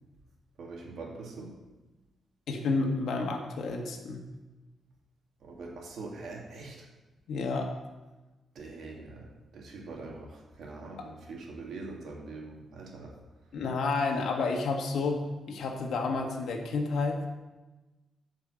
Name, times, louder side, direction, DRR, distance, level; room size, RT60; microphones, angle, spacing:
voice 1, 0.6-1.5 5.4-6.8 8.6-9.3 9.5-13.1, right 3 dB, 65° right, -1 dB, 2.4 m, -43 dB
voice 2, 2.5-4.2 7.3-7.7 11.0-11.1 13.5-17.2, left 3 dB, 75° left, 2 dB, 1.7 m, -30 dB
9.9 x 5.5 x 7.7 m, 1.1 s
cardioid pair, 140°, 0 cm